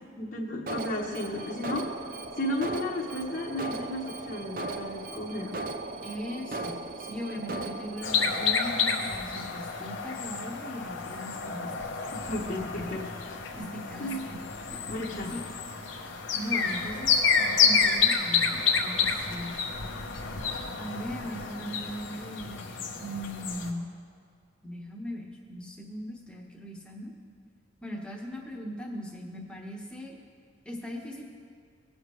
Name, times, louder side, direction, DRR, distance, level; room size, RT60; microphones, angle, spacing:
voice 1, 0.2-1.9 2.3-5.5 12.1-13.4 14.0-14.2 14.9-15.3, left 1 dB, 45° left, -5 dB, 1.0 m, -34 dB
Alarm, 0.7-8.5, right 2 dB, 45° right, 0.5 m, -37 dB
voice 2, 6.0-11.7 12.8-13.0 13.6-14.4 14.7-14.8 15.3-15.4 16.3-19.7 20.8-23.9 24.6-27.1 27.8-30.1 30.6-31.3, equal, 5° left, -2 dB, 1.2 m, -39 dB
sound 1, 8.0-23.7, left 5 dB, 75° left, 0.9 m, -29 dB
19.0 x 6.5 x 3.2 m, 2.2 s
head